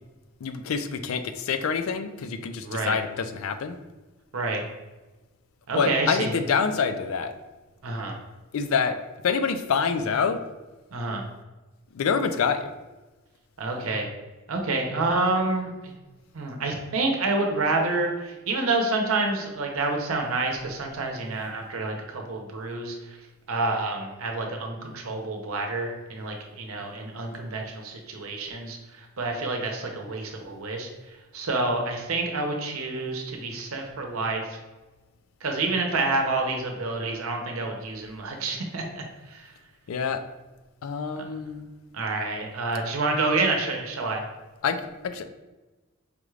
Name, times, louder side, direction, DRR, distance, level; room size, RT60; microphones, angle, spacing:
voice 1, 0.4-3.8 5.8-7.3 8.5-9.0 9.2-10.4 11.9-12.7 39.9-40.2 40.8-41.7 44.6-45.2, left 6 dB, 75° left, 9 dB, 0.4 m, -26 dB
voice 2, 2.6-3.0 4.3-4.6 5.7-6.4 7.8-8.2 10.9-11.2 13.6-14.1 14.5-15.9 16.3-23.2 23.5-30.9 31.3-34.6 35.4-39.0 39.3-39.5 41.9-44.2, right 3 dB, 85° right, 2 dB, 0.7 m, -28 dB
5.0 x 2.4 x 3.2 m, 1.1 s
head